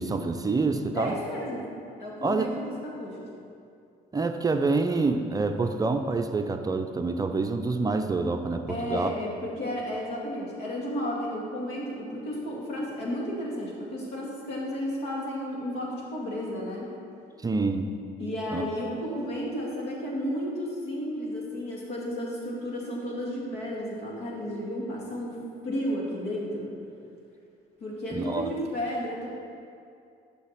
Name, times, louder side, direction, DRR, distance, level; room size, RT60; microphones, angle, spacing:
voice 1, 0.0-1.2 2.2-2.4 4.1-9.1 17.4-17.9 18.5-18.6 28.1-28.5, right 3 dB, 20° right, 6 dB, 0.5 m, -27 dB
voice 2, 0.9-1.7 2.0-3.3 8.7-16.9 18.2-25.4 25.6-26.7 27.8-29.3, equal, 80° left, -4 dB, 2.5 m, -33 dB
12.5 x 5.7 x 4.5 m, 2.4 s
cardioid pair, 110°, 17 cm